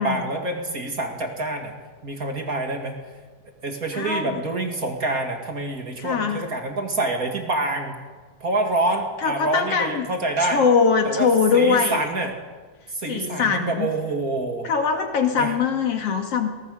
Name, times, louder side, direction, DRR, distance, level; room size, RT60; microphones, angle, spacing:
voice 1, 0.0-1.8 2.0-3.0 3.6-7.9 8.4-10.6 11.0-12.3 12.9-14.7 15.3-15.5, right 2 dB, 30° right, 3 dB, 2.2 m, -26 dB
voice 2, 3.9-4.4 6.0-6.4 9.2-10.1 10.4-12.0 13.1-13.9 14.6-16.5, left 5 dB, 50° left, 5 dB, 2.6 m, -22 dB
22.0 x 18.5 x 6.8 m, 1.4 s
omnidirectional pair, 4.0 m